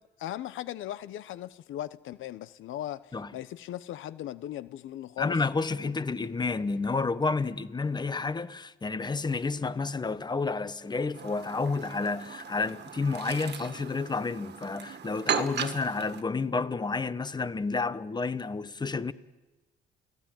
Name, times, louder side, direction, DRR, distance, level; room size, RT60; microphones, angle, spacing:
voice 1, 0.2-3.0 3.3-5.3 5.8-5.9, left 12 dB, 80° left, 0.8 m, -38 dB
voice 2, 5.2-19.1, left 4 dB, 20° left, 1.0 m, -30 dB
Chirp tweet, 11.1-16.2, right 8 dB, 60° right, 1.8 m, -37 dB
29.5 x 17.5 x 9.1 m
cardioid pair, 90°, 20 cm